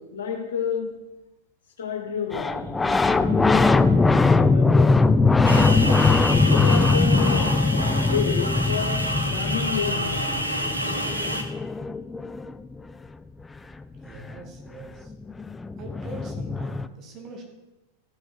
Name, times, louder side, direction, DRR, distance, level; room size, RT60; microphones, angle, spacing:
voice 1, 0.1-0.9 1.8-3.8 4.2-5.4 6.3-7.6 7.9-9.0 9.2-10.4, left 7 dB, 65° left, 0 dB, 2.6 m, -30 dB
sound 1, 2.3-12.7 14.8-14.9 15.1-16.9, left 3 dB, 10° left, 0.4 m, -21 dB
sound 2, 5.5-11.4, equal, 85° right, 1.1 m, -28 dB
voice 2, 14.0-15.1 15.8-17.4, right 2 dB, 35° right, 2 dB, 2.4 m, -42 dB
15.0 x 6.3 x 4.7 m, 1.0 s
figure-of-eight pair, 90°, 0 cm